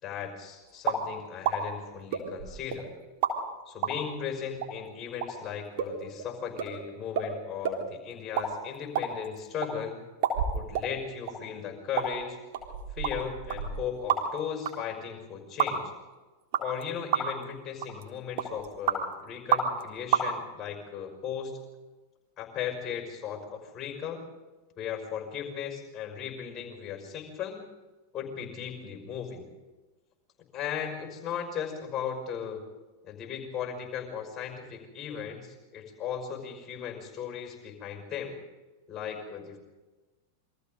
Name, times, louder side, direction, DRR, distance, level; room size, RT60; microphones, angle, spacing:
voice 1, 0.0-2.9 3.7-10.0 10.5-12.4 12.9-15.9 16.6-21.6 22.4-24.3 24.8-27.6 28.1-29.5 30.5-32.6 33.0-38.4 38.9-39.6, left 8 dB, 25° left, 4 dB, 5.8 m, -37 dB
sound 1, 0.8-1.0 1.4-1.6 2.1-2.8 3.2-3.3 3.8-3.9 4.6-4.7 5.2-5.3 5.8-5.9 6.2-6.3 6.6-6.7 7.1-7.3 7.6-7.8 8.2-8.5 8.7-9.7 10.2-10.9 11.3-11.4 12.0-12.1 12.5-14.4 14.6-14.7 15.6-15.7 16.5-16.8 17.1-17.4 17.8-18.0 18.4-19.0 19.5-19.8 20.1-20.2, right 7 dB, 50° right, 3.7 m, -28 dB
28.5 x 23.5 x 4.0 m, 1.2 s
figure-of-eight pair, 90°, 0 cm